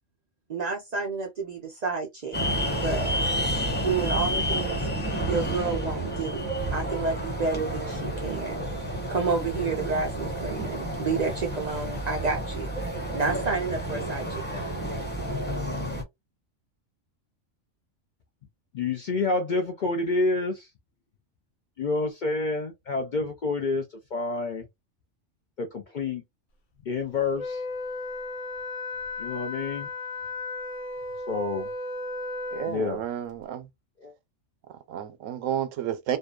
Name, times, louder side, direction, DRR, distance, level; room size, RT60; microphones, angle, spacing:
voice 1, 0.5-2.4 2.8-3.1 3.8-4.9 5.2-8.7 9.1-12.7 13.1-14.7, right 4 dB, 60° right, 0.4 m, -30 dB
sound 1, 2.3-16.0, equal, 10° left, 0.8 m, -30 dB
voice 2, 18.7-20.7 21.8-23.8 24.1-24.6 25.6-26.2 26.9-27.6 29.2-29.9 31.3-31.7 32.7-33.0 34.0-34.1, left 3 dB, 60° left, 0.5 m, -28 dB
Wind instrument woodwind instrument, 27.4-32.8, left 2 dB, 75° left, 1.1 m, -35 dB
voice 3, 32.5-33.7 34.7-36.2, right 10 dB, 85° right, 0.9 m, -31 dB
2.6 x 2.2 x 2.2 m
omnidirectional pair, 1.3 m